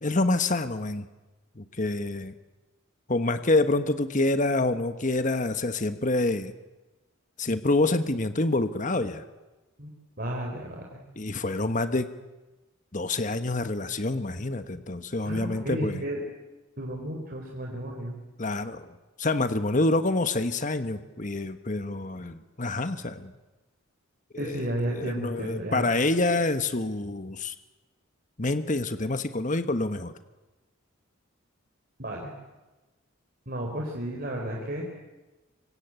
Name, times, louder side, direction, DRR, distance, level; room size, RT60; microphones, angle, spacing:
voice 1, 0.0-1.1 1.6-2.3 3.1-6.5 7.4-9.2 11.2-12.1 12.9-16.0 18.4-18.8 19.2-23.3 24.3-24.5 24.9-27.5 28.4-30.1, left 2 dB, 40° left, 10 dB, 1.3 m, -27 dB
voice 2, 10.2-11.0 15.2-16.2 16.8-18.2 24.4-25.9 32.0-32.3 33.5-34.8, right 1 dB, 45° right, -1 dB, 4.3 m, -33 dB
25.5 x 25.0 x 9.0 m, 1.1 s
head